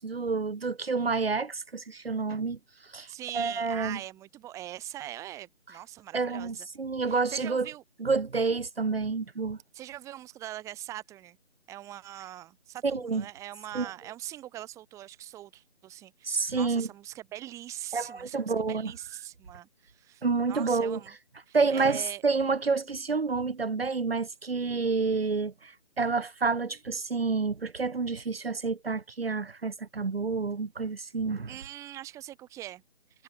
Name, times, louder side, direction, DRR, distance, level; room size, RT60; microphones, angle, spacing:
voice 1, 0.0-2.6 2.9-3.1 3.3-4.0 6.1-7.7 8.0-9.6 12.8-13.2 13.7-13.9 16.2-16.9 17.9-18.9 20.2-21.0 21.5-31.5, right 4 dB, 55° right, 3.9 m, -29 dB
voice 2, 3.1-6.7 7.1-7.8 9.7-11.4 11.7-21.1 21.5-22.2 31.5-32.8, right 13 dB, 10° right, 4.9 m, -42 dB
figure-of-eight pair, 155°, 34 cm